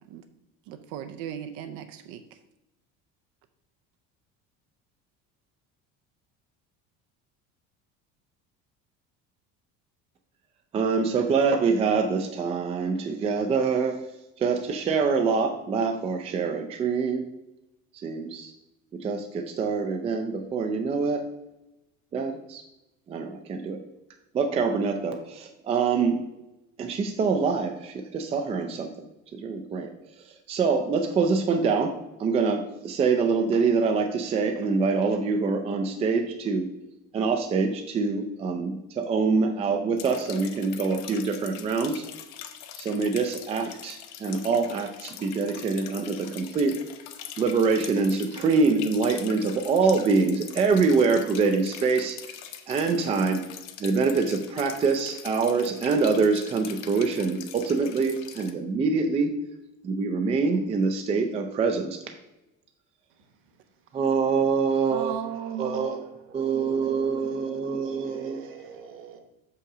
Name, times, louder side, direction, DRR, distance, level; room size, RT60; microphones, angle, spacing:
voice 1, 0.7-2.2 64.9-65.9, right 9 dB, 70° right, 8 dB, 0.6 m, -36 dB
voice 2, 10.7-14.0 14.4-17.3 18.0-18.5 19.0-21.2 22.1-22.6 23.1-23.8 24.3-26.2 26.8-28.9 29.3-29.9 30.5-31.9 32.2-36.7 37.1-42.0 42.8-46.8 47.4-52.2 52.7-53.4 53.8-59.3 59.8-62.0 63.9-65.1 65.6-66.0 66.3-68.4, right 4 dB, 20° right, 4 dB, 0.4 m, -25 dB
sound 1, 40.0-58.5, left 10 dB, 60° left, 0.8 m, -43 dB
voice 3, 64.7-69.2, right 7 dB, 45° right, 6 dB, 1.1 m, -46 dB
6.4 x 5.6 x 4.8 m, 0.94 s
cardioid pair, 175°, 30 cm